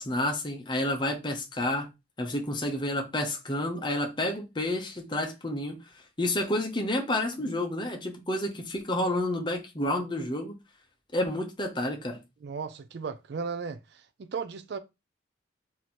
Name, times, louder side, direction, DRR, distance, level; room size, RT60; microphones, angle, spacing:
voice 1, 0.0-1.9 2.2-5.8 6.2-10.5 11.1-12.2, left 1 dB, 25° left, 0.8 m, -30 dB
voice 2, 12.4-14.8, right 5 dB, 55° right, 0.4 m, -36 dB
3.1 x 2.8 x 4.1 m
head